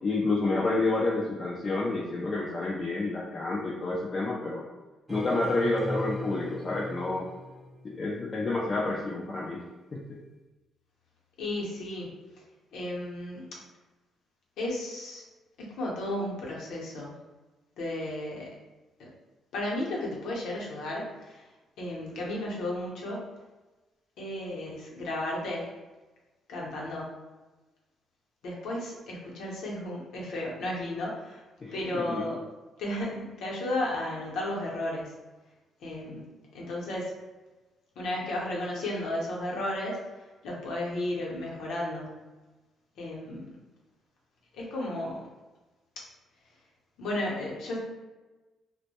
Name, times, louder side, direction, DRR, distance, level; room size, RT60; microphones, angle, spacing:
voice 1, 0.0-4.6 5.1-7.3 7.8-9.6 9.9-10.2 31.6-32.2, left 2 dB, 40° left, -4 dB, 0.4 m, -29 dB
sound 1, 5.1-8.1, equal, 15° right, 0.7 m, -37 dB
voice 2, 11.4-12.1 12.7-13.5 14.6-15.2 15.6-17.1 17.8-18.5 19.0-19.1 19.5-21.4 21.8-23.2 24.2-25.7 26.5-27.1 28.4-31.4 31.7-32.4 32.8-35.1 35.8-36.3 36.5-37.1 38.0-40.0 40.4-42.1 43.0-43.5 44.5-45.2 47.0-47.8, left 1 dB, 80° left, -4 dB, 0.7 m, -33 dB
2.1 x 2.1 x 2.8 m, 1.2 s
cardioid pair, 90°, 0 cm